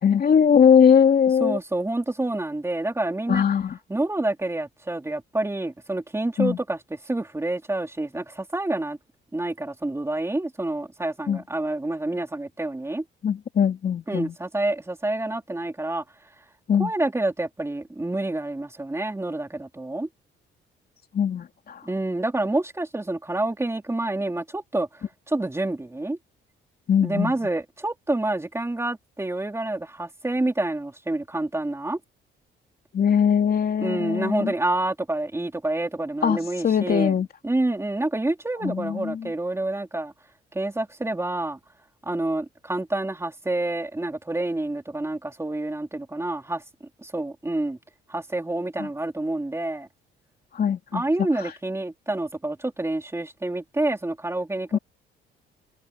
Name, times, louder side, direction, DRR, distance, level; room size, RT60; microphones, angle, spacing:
voice 1, 0.0-1.6 3.3-3.8 6.4-6.6 11.3-11.4 13.2-14.3 16.7-16.9 21.1-21.8 26.9-27.3 32.9-34.5 36.2-36.4 36.6-37.3 38.6-39.3 48.8-48.9 50.5-51.0 54.7-54.8, left 7 dB, 50° left, 3.0 m, -20 dB
voice 2, 1.4-3.4 3.9-9.0 9.3-13.0 14.1-16.0 16.8-20.1 21.8-26.2 27.0-32.0 33.8-37.1 37.4-40.1 40.5-41.6 42.0-46.6 47.0-47.8 48.1-49.9 50.9-54.8, right 2 dB, 15° right, 3.3 m, -28 dB
cardioid pair, 90°, 20 cm